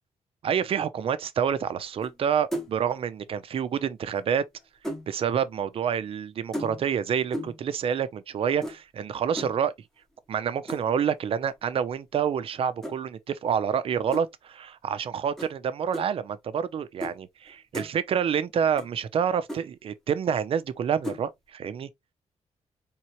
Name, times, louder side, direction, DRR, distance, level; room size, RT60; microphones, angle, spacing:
voice 1, 0.4-4.4 5.1-9.7 10.3-21.9, right 8 dB, 55° right, 0.6 m, -28 dB
sound 1, 2.0-2.2 2.5-2.9 4.1-5.1 6.5-7.0 7.3-7.7 8.6-8.8 9.4-9.6 10.7-11.0 12.8-13.0 14.1-14.3 15.4-15.5 15.9-16.1 17.0-17.2 17.5-17.9 18.8-18.9 19.2-19.3 19.5-19.6 21.0-21.2, equal, 5° left, 2.0 m, -35 dB
4.4 x 3.7 x 3.0 m
cardioid pair, 130°, 12 cm